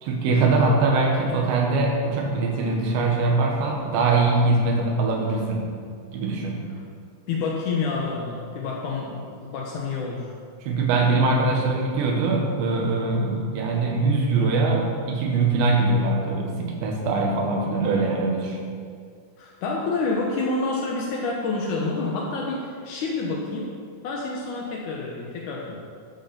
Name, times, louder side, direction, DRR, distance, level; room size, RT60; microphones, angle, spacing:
voice 1, 0.0-5.7 6.1-6.6 10.6-18.6, right 3 dB, 80° right, 0 dB, 3.8 m, -22 dB
voice 2, 7.3-10.3 19.4-23.8 24.0-25.8, left 3 dB, 80° left, -2 dB, 1.8 m, -28 dB
12.0 x 11.5 x 4.4 m, 2.2 s
omnidirectional pair, 5.1 m